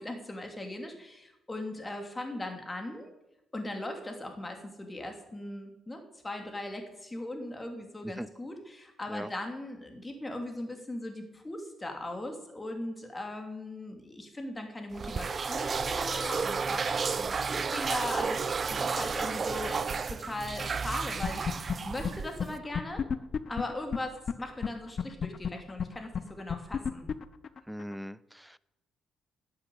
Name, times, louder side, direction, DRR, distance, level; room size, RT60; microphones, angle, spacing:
voice 1, 0.0-3.1 3.5-21.5 21.8-23.0 23.5-27.1, left 1 dB, 20° left, 4 dB, 3.0 m, -39 dB
sound 1, 14.9-22.6, right 5 dB, 40° right, 0.6 m, -32 dB
sound 2, 21.2-21.8 22.0-22.1 22.4-22.5 22.7-24.3 24.6-24.7 25.0-27.9, left 7 dB, 50° left, 0.7 m, -30 dB
voice 2, 27.7-28.6, equal, ahead, 18 dB, 0.5 m, -40 dB
12.5 x 7.9 x 8.7 m, 0.91 s
cardioid pair, 90°, 0 cm